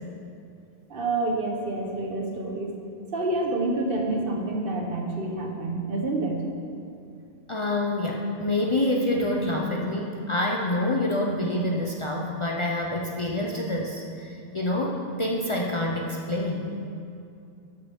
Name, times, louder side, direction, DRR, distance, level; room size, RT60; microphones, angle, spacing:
voice 1, 0.9-2.7 3.1-6.5, right 2 dB, 60° right, 1 dB, 1.1 m, -28 dB
voice 2, 7.5-14.0 14.5-16.7, left 1 dB, 35° left, -1 dB, 0.6 m, -27 dB
12.5 x 4.2 x 5.2 m, 2.6 s
omnidirectional pair, 1.1 m